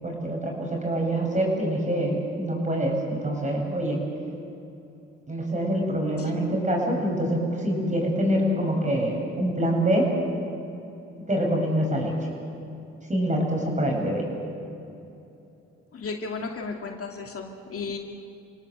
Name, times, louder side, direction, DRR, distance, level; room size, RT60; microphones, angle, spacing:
voice 1, 0.0-4.0 5.3-10.1 11.3-12.1 13.1-14.3, right 1 dB, 25° right, 0 dB, 7.7 m, -25 dB
voice 2, 15.9-18.0, left 4 dB, 50° left, 2 dB, 2.4 m, -34 dB
29.0 x 18.0 x 8.1 m, 2.9 s
cardioid pair, 90°, 30 cm